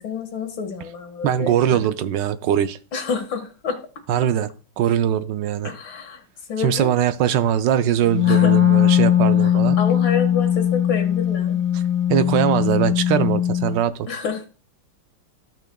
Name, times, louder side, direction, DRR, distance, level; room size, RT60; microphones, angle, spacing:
voice 1, 0.0-1.5 2.9-3.8 5.6-6.2 6.5-6.9 8.3-8.5 9.4-11.6 14.1-14.5, left 6 dB, 80° left, 2.3 m, -28 dB
voice 2, 1.2-2.8 4.1-4.5 4.8-5.7 6.6-9.8 11.7-11.8 12.1-14.1, right 10 dB, 75° right, 1.2 m, -21 dB
Wind instrument woodwind instrument, 8.0-13.7, left 10 dB, 5° right, 2.0 m, -19 dB
15.0 x 5.9 x 2.3 m
omnidirectional pair, 2.1 m